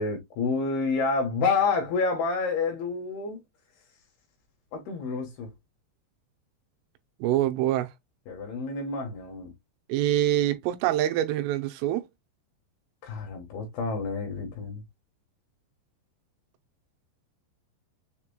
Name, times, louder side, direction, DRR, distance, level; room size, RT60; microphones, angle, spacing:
voice 1, 0.0-3.4 4.7-5.5 8.3-9.5 13.0-14.8, left 4 dB, 70° left, 2.7 m, -28 dB
voice 2, 7.2-7.9 9.9-12.1, right 13 dB, 90° right, 3.2 m, -25 dB
6.9 x 2.9 x 2.2 m
omnidirectional pair, 5.5 m